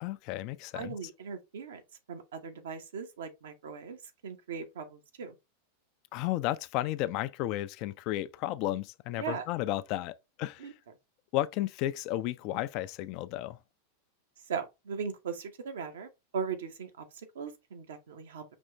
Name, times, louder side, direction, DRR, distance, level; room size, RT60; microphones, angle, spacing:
voice 1, 0.0-1.0 6.1-10.7 11.3-13.6, left 15 dB, 40° left, 0.3 m, -33 dB
voice 2, 0.7-1.8 2.1-4.0 4.2-5.3 9.2-9.4 10.6-10.7 14.5-17.1 17.3-18.4, right 6 dB, 60° right, 0.8 m, -38 dB
5.3 x 3.0 x 3.2 m
figure-of-eight pair, 90°, 0 cm